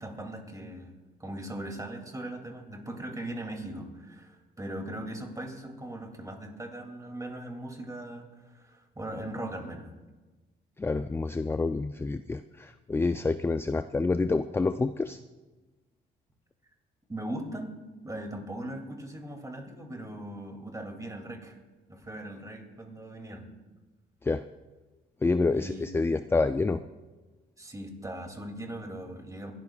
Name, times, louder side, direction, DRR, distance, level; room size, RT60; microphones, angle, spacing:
voice 1, 0.0-9.9 17.1-17.8 18.0-21.6 21.9-23.5 25.5-25.9 27.6-29.5, right 1 dB, 15° right, 3 dB, 2.4 m, -39 dB
voice 2, 10.8-15.2 24.2-24.4 25.2-26.8, left 3 dB, 10° left, 11 dB, 0.3 m, -28 dB
26.0 x 12.0 x 2.3 m, 1.2 s
cardioid pair, 90°, 20 cm